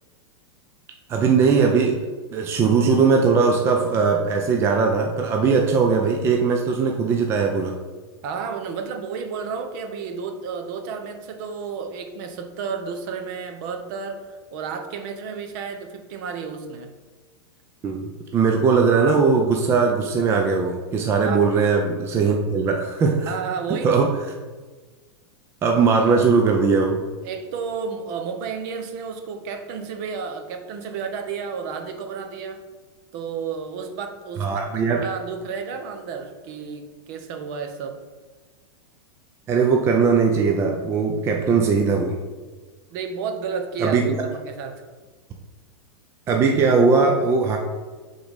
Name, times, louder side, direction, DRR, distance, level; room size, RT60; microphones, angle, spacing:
voice 1, 1.1-2.0 2.3-7.8 17.8-23.3 23.8-24.1 25.6-27.0 34.4-35.0 39.5-42.2 43.8-44.2 46.3-47.6, right 5 dB, 15° right, 1 dB, 0.4 m, -19 dB
voice 2, 8.2-14.2 14.5-16.9 21.2-21.5 23.3-24.1 27.2-32.6 33.1-34.6 34.9-38.0 42.9-44.9, right 5 dB, 45° right, 5 dB, 0.7 m, -31 dB
5.0 x 3.9 x 5.1 m, 1.3 s
supercardioid pair, 155°, 15 cm